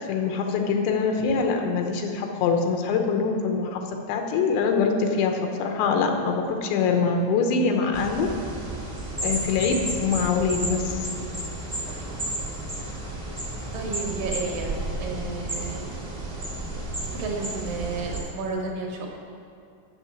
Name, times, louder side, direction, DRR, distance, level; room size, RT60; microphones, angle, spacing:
voice 1, 0.0-3.8 4.1-8.3 9.2-11.0, left 5 dB, 85° left, 3 dB, 3.2 m, -24 dB
sound 1, 7.9-18.2, right 1 dB, 20° right, 0.9 m, -32 dB
voice 2, 13.7-14.7 15.0-15.8 17.0-19.1, right 4 dB, 70° right, 0 dB, 2.3 m, -32 dB
8.9 x 6.6 x 8.3 m, 2.4 s
omnidirectional pair, 5.0 m